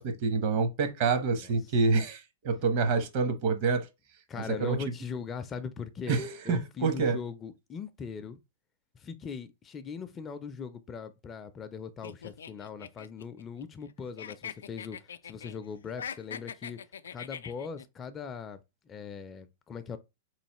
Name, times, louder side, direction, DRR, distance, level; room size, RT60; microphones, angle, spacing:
voice 1, 0.0-3.9 4.5-4.8 6.1-7.2, right 4 dB, 50° right, 0.9 m, -27 dB
voice 2, 4.3-6.2 6.4-8.4 8.9-16.8 17.1-18.6 18.9-20.0, left 6 dB, 25° left, 0.4 m, -40 dB
sound 1, 12.0-13.9 14.2-15.6 15.9-17.8, left 7 dB, 85° left, 0.3 m, -42 dB
4.0 x 3.1 x 2.9 m
hypercardioid pair, 125°, 0 cm